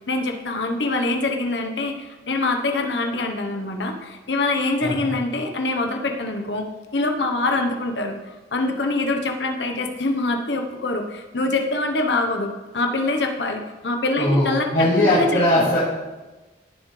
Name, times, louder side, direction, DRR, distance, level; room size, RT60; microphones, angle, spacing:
voice 1, 0.1-8.2 8.5-14.7 15.0-15.7, left 2 dB, 80° left, 3 dB, 1.2 m, -24 dB
voice 2, 4.8-5.1 14.2-15.9, left 1 dB, 65° left, -12 dB, 3.3 m, -20 dB
17.5 x 7.1 x 3.4 m, 1.2 s
head